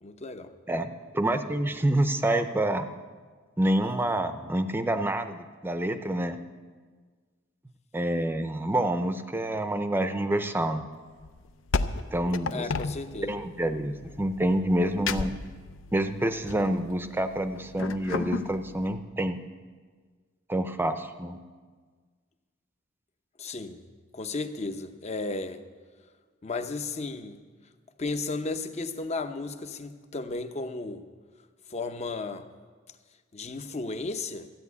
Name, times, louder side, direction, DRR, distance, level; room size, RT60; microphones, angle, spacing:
voice 1, 0.0-0.5 12.5-13.4 23.4-23.8 24.1-25.6 26.4-27.4 28.0-31.1 31.7-32.5 33.3-34.5, left 3 dB, 35° left, 9 dB, 0.8 m, -34 dB
voice 2, 0.7-2.9 3.6-6.4 7.9-10.9 12.1-12.7 13.3-15.4 15.9-19.4 20.5-21.4, right 1 dB, 10° right, 9 dB, 0.6 m, -27 dB
sound 1, 11.2-18.9, left 4 dB, 75° left, 0.6 m, -35 dB
13.0 x 9.3 x 8.3 m, 1.5 s
head